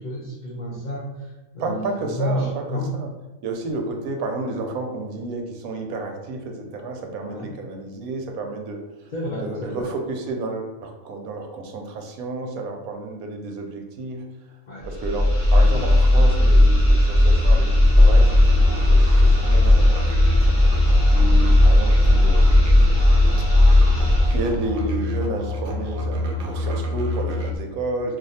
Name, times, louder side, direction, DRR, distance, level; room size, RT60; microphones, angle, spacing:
voice 1, 0.0-3.0 7.2-7.5 9.1-9.9 14.7-14.9, equal, 70° left, -5 dB, 0.4 m, -30 dB
voice 2, 1.6-3.1 3.4-8.8 9.4-14.2 14.8-20.1 21.1-22.8 24.3-28.2, right 3 dB, 90° right, 3 dB, 1.1 m, -31 dB
sound 1, 14.8-24.5, left 1 dB, 10° left, 0.8 m, -15 dB
Musical instrument, 18.0-27.6, left 2 dB, 65° right, 0.6 m, -28 dB
2.5 x 2.3 x 4.0 m, 1.1 s
omnidirectional pair, 1.5 m